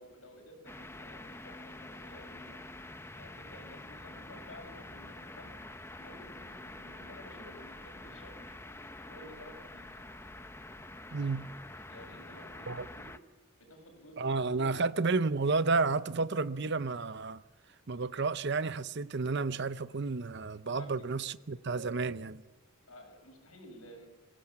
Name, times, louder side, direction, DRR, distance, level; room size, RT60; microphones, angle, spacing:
voice 1, 0.0-2.6 3.2-5.5 6.0-8.5 9.1-9.9 11.9-13.1 13.6-14.9 20.8-21.3 22.9-24.1, left 1 dB, 85° left, 7.6 m, -53 dB
sound 1, 0.7-13.2, left 2 dB, 10° left, 0.8 m, -47 dB
voice 2, 11.1-11.5 12.7-12.9 14.2-17.4 17.9-22.4, right 4 dB, 55° right, 0.7 m, -31 dB
25.5 x 16.5 x 8.7 m
head